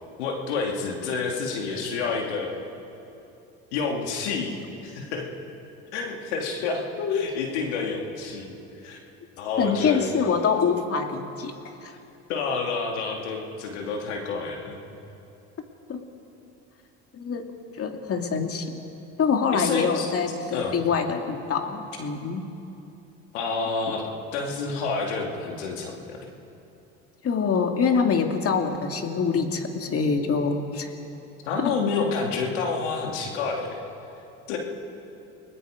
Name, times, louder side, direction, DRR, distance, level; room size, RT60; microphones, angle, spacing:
voice 1, 0.2-2.5 3.7-4.6 4.8-5.3 5.9-6.8 7.1-8.5 8.8-9.0 9.4-10.0 12.3-14.8 19.5-20.1 20.5-20.7 23.3-26.2 31.4-33.8 34.5-34.6, left 4 dB, 90° left, 1 dB, 2.8 m, -29 dB
voice 2, 7.0-7.3 9.6-11.5 11.8-12.0 15.9-16.0 17.1-18.8 19.2-22.4 27.2-30.9, left 5 dB, 45° left, 4 dB, 2.6 m, -25 dB
30.0 x 20.0 x 5.1 m, 2.8 s
supercardioid pair, 80°, 33 cm